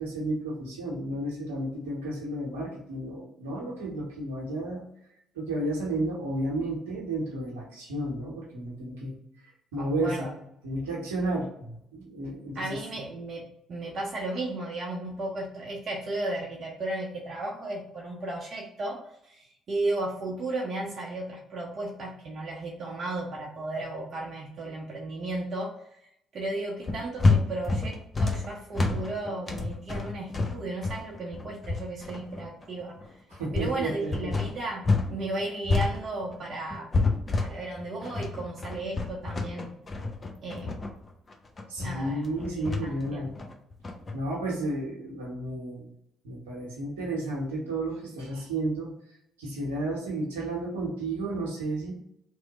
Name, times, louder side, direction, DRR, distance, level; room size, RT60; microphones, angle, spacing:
voice 1, 0.0-4.8 5.3-9.2 9.7-10.3 10.6-12.8 33.3-34.5 41.7-43.3 44.1-45.9 46.2-48.9 49.4-51.9, right 1 dB, 80° right, -3 dB, 0.9 m, -32 dB
voice 2, 9.8-10.3 12.5-25.8 26.3-33.0 33.5-36.9 37.4-39.8 40.4-40.8 41.8-42.2 42.6-43.3, right 2 dB, 50° right, -3 dB, 0.6 m, -34 dB
sound 1, 26.8-35.1 35.4-44.1, left 3 dB, 35° left, 0.6 m, -28 dB
3.0 x 2.1 x 4.0 m, 0.74 s
hypercardioid pair, 50°, 0 cm